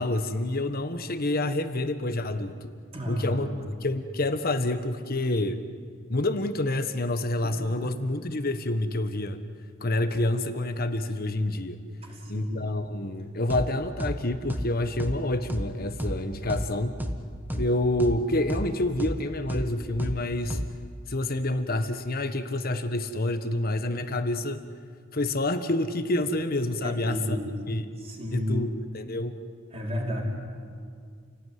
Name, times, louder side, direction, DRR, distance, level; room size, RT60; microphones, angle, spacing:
voice 1, 0.0-2.7 3.1-3.5 3.8-5.6 6.1-9.4 9.8-11.8 12.3-17.0 17.5-20.6 21.1-24.6 25.1-27.4 27.7-27.8 28.3-29.4, left 1 dB, 45° left, 9 dB, 1.4 m, -28 dB
voice 2, 2.9-3.6 7.4-7.9 12.0-12.7 26.8-27.5 28.0-28.6 29.7-30.2, left 1 dB, 30° right, -2 dB, 5.0 m, -32 dB
sound 1, 13.5-13.7 14.0-14.2 14.5-14.7 15.0-15.2 15.5-15.7 16.0-16.2 16.5-16.7 17.0-17.2 17.5-17.7 18.0-18.2 18.5-18.7 19.0-19.2 19.5-19.7 20.0-20.2 20.5-20.7, equal, 10° right, 1.4 m, -30 dB
29.0 x 18.0 x 9.6 m, 2.2 s
head